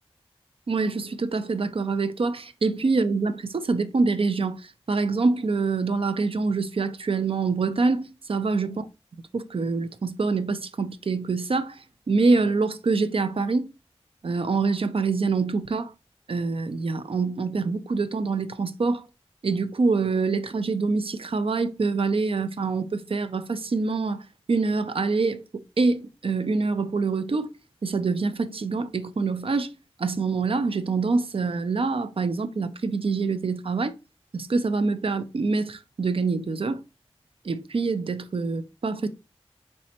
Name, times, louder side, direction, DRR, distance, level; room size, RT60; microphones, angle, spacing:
voice 1, 0.7-8.8 9.3-13.7 14.2-15.9 16.3-19.1 19.4-27.5 27.8-29.7 30.0-33.9 34.3-36.8 37.4-39.1, right 4 dB, 60° right, 0.4 m, -25 dB
4.1 x 3.3 x 2.8 m
wide cardioid pair, 70°, 10 cm